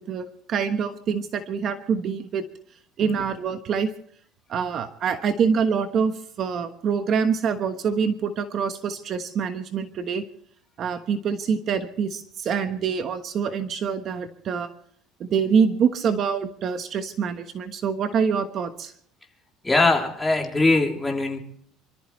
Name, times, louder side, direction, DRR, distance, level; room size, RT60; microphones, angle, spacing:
voice 1, 0.0-2.4 3.0-3.9 4.5-10.2 10.8-14.7 15.2-18.9, right 6 dB, 45° right, 8 dB, 1.2 m, -25 dB
voice 2, 19.6-21.4, left 2 dB, 10° left, 1 dB, 3.1 m, -21 dB
27.5 x 14.0 x 3.2 m, 0.63 s
cardioid pair, 135°, 0 cm